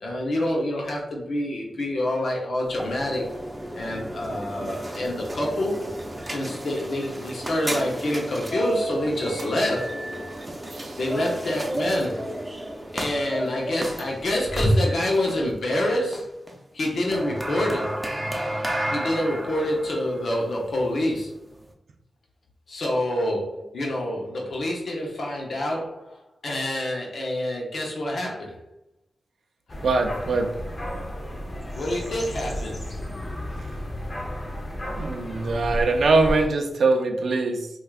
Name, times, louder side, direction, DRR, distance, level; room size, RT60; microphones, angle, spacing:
voice 1, 0.0-3.2 3.7-6.0 6.3-9.9 11.0-12.3 12.9-16.4 16.7-18.0 18.9-21.3 22.7-28.6 29.7-29.8 31.7-32.8, left 1 dB, 75° left, -1 dB, 0.7 m, -27 dB
sound 1, 2.6-21.7, right 1 dB, 20° right, 0.6 m, -31 dB
sound 2, 29.7-36.5, equal, 40° left, 0.7 m, -33 dB
voice 2, 29.8-30.5 34.9-37.7, right 3 dB, 80° right, 4 dB, 0.4 m, -22 dB
4.3 x 2.4 x 2.4 m, 0.84 s
cardioid pair, 55°, 0 cm